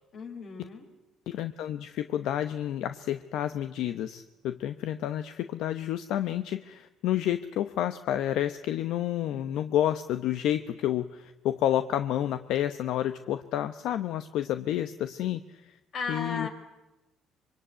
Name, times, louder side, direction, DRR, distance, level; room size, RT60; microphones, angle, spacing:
voice 1, 0.1-0.9 15.9-16.5, left 4 dB, 55° left, 4 dB, 5.2 m, -35 dB
voice 2, 1.3-15.8 16.1-16.5, left 11 dB, 75° left, 10 dB, 0.9 m, -30 dB
25.0 x 24.0 x 9.1 m, 1.0 s
cardioid pair, 105°, 0 cm